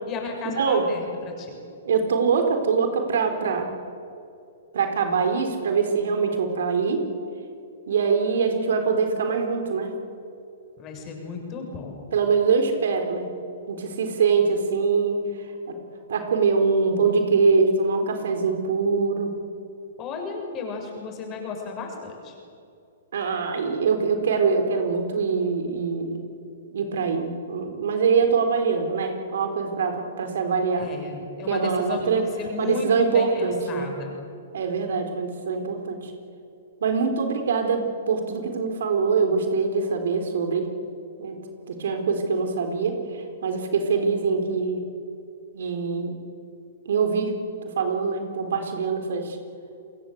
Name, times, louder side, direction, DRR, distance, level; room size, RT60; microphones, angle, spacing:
voice 1, 0.1-1.6 10.8-12.0 20.0-22.3 30.8-32.0 32.4-32.9 33.1-34.2, left 5 dB, 30° left, 2 dB, 7.2 m, -34 dB
voice 2, 1.8-3.7 4.7-7.0 7.9-9.9 12.1-13.3 13.7-15.2 15.7-15.8 16.1-19.3 23.1-26.2 26.7-30.9 31.4-32.3 32.6-33.9 34.5-36.1 36.8-40.7 41.2-41.4 41.7-44.8 45.5-46.1 46.9-47.3 47.6-49.4, right 5 dB, 70° right, 6 dB, 4.1 m, -23 dB
30.0 x 21.0 x 8.2 m, 2.6 s
hypercardioid pair, 130°, 0 cm